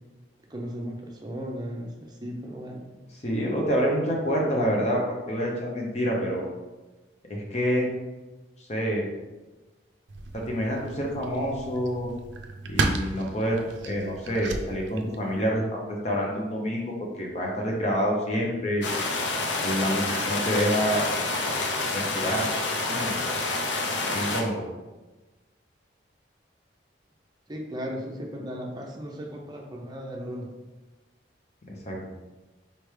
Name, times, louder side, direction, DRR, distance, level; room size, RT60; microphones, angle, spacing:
voice 1, 0.5-2.8 27.5-30.5, equal, 20° right, 0 dB, 0.6 m, -36 dB
voice 2, 3.1-6.5 7.3-7.9 8.7-9.0 10.3-12.1 12.7-13.6 13.9-18.9 19.6-21.1 21.9-22.5 22.9-23.1 24.1-24.6 31.7-32.0, equal, 35° left, -1 dB, 0.7 m, -27 dB
sound 1, 10.1-15.5, right 3 dB, 70° right, 0.4 m, -33 dB
sound 2, 18.8-24.4, left 3 dB, 70° left, 0.6 m, -28 dB
4.3 x 3.4 x 3.2 m, 1.1 s
head